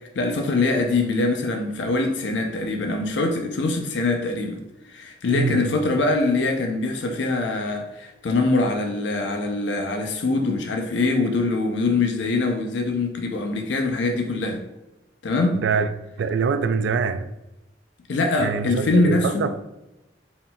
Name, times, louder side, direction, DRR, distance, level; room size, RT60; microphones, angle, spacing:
voice 1, 0.2-4.6 4.9-14.6 15.2-15.6 18.1-19.6, left 3 dB, 80° left, 0.5 m, -23 dB
voice 2, 5.3-5.7 15.5-15.9 16.2-17.3 18.4-19.6, right 5 dB, 80° right, 0.3 m, -24 dB
4.1 x 3.8 x 2.2 m
head